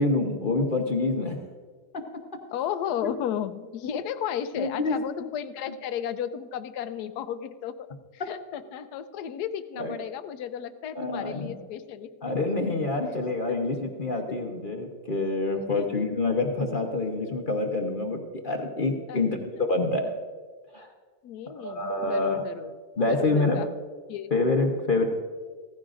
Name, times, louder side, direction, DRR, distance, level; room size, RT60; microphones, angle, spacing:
voice 1, 0.0-1.4 1.9-2.0 3.0-3.1 4.6-5.0 9.8-9.9 10.9-11.5 12.2-20.1 20.7-20.9 21.6-22.4 23.0-23.6 24.3-25.1, left 2 dB, 40° left, 2 dB, 0.8 m, -27 dB
voice 2, 2.5-7.7 8.1-12.1 14.3-14.4 15.5-16.0 19.1-19.2 21.2-22.7 23.1-23.7 24.1-24.3, left 9 dB, 70° left, 11 dB, 1.1 m, -34 dB
16.5 x 15.0 x 2.5 m, 1.5 s
omnidirectional pair, 2.0 m